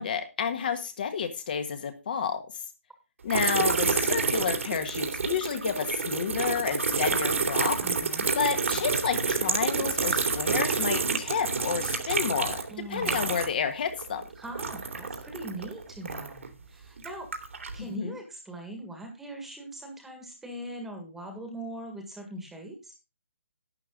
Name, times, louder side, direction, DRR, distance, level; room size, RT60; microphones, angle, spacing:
voice 1, 0.0-2.4 3.2-7.8 8.3-14.2 17.8-18.2, left 7 dB, 40° left, 7 dB, 1.6 m, -30 dB
sound 1, 3.3-13.7 13.9-16.5 17.0-17.8, right 4 dB, 70° right, 2.8 m, -28 dB
voice 2, 7.8-8.3 12.7-13.3 14.4-17.3 17.7-22.9, right 1 dB, 5° right, 3 dB, 1.7 m, -41 dB
11.5 x 8.8 x 3.8 m, 0.28 s
hypercardioid pair, 170°, 7 cm